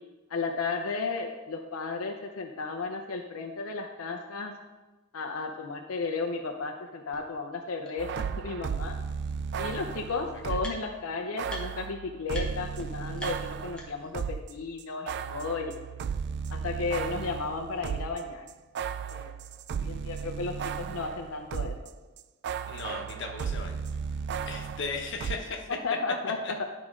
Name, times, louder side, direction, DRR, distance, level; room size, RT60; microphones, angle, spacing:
voice 1, 0.3-4.5 5.1-8.9 9.6-15.7 16.5-18.4 19.1-19.3 19.7-21.7 25.7-26.6, left 4 dB, 90° left, 3 dB, 0.6 m, -34 dB
sound 1, 7.1-7.2 7.8-7.9 9.2-9.3 9.6-11.1 11.5-11.9 12.3-12.5 12.8-12.9 13.2-14.2, left 1 dB, 5° left, 1.2 m, -43 dB
sound 2, 8.0-10.8 11.4-14.5 14.8-21.9 22.2-25.4, right 6 dB, 55° right, 0.3 m, -35 dB
voice 2, 22.7-23.8 24.4-25.7 26.4-26.5, left 4 dB, 60° left, 2 dB, 1.1 m, -37 dB
11.5 x 5.0 x 3.6 m, 1.2 s
head